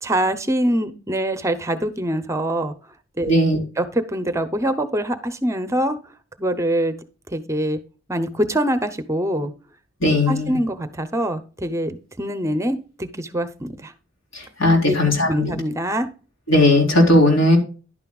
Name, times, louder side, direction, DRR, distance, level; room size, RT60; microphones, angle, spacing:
voice 1, 0.0-2.7 3.2-3.3 3.8-6.0 6.4-6.9 7.3-7.8 8.1-9.5 10.3-13.9 14.9-15.0 15.3-16.1, right 1 dB, 15° right, 11 dB, 0.7 m, -24 dB
voice 2, 3.3-3.6 10.0-10.5 14.3-15.5 16.5-17.6, left 1 dB, 75° left, 1 dB, 3.8 m, -17 dB
11.0 x 9.5 x 2.3 m, 0.35 s
head